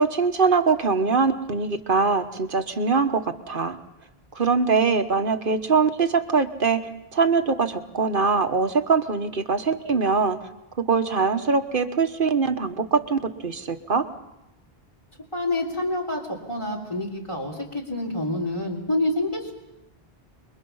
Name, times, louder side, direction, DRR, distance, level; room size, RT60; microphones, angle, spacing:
voice 1, 0.0-3.8 4.3-6.8 7.1-10.4 10.8-14.1, right 4 dB, 60° right, 8 dB, 1.4 m, -22 dB
voice 2, 15.3-19.5, left 1 dB, 30° left, -1 dB, 3.3 m, -27 dB
28.0 x 22.5 x 5.6 m, 0.92 s
omnidirectional pair, 1.0 m